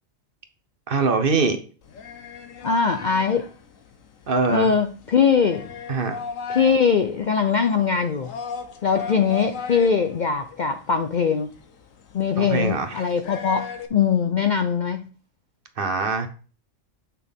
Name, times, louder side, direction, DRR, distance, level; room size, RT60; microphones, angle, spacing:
voice 1, 0.9-1.6 4.3-4.7 5.9-6.2 12.4-13.0 15.8-16.3, right 4 dB, 50° right, 1.0 m, -23 dB
sound 1, 1.8-13.9, left 5 dB, 85° left, 1.3 m, -38 dB
voice 2, 2.6-3.5 4.5-5.7 6.5-8.4 8.8-11.5 12.1-15.1, left 6 dB, 55° left, 0.5 m, -21 dB
8.3 x 5.9 x 3.6 m
omnidirectional pair, 1.3 m